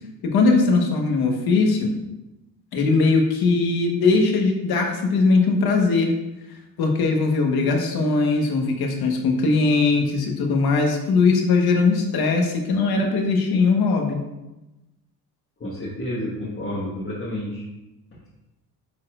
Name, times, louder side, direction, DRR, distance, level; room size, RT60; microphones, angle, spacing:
voice 1, 0.3-1.9 2.7-6.1 6.8-14.2, left 3 dB, 65° left, 2 dB, 1.3 m, -20 dB
voice 2, 15.6-17.6, left 1 dB, 30° left, -7 dB, 1.5 m, -30 dB
9.6 x 4.1 x 2.5 m, 0.99 s
cardioid pair, 105°, 41 cm